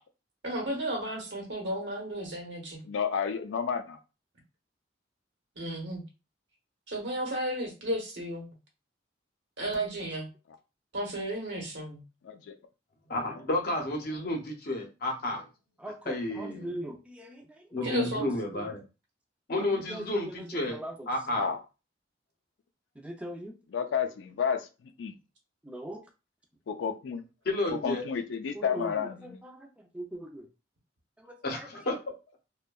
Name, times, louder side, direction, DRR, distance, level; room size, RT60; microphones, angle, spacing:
voice 1, 0.4-2.8 5.6-6.0 6.9-8.5 9.6-10.3 10.9-12.0 17.8-18.2, right 1 dB, 70° right, 0.9 m, -33 dB
voice 2, 2.8-4.0 12.2-12.5 21.4-21.6 23.7-24.7 25.0-25.1 26.7-27.2 27.7-29.4, left 6 dB, 90° left, 0.4 m, -31 dB
voice 3, 13.1-15.5 16.1-16.8 17.7-18.9 19.5-20.8 21.1-21.5 27.4-28.0 31.4-32.0, left 2 dB, 55° left, 0.7 m, -31 dB
voice 4, 15.8-18.1 18.5-18.7 19.6-21.1 23.0-23.5 25.6-26.0 28.5-29.7 29.9-30.5 31.2-31.7, right 1 dB, 5° right, 0.4 m, -40 dB
2.6 x 2.2 x 2.2 m
head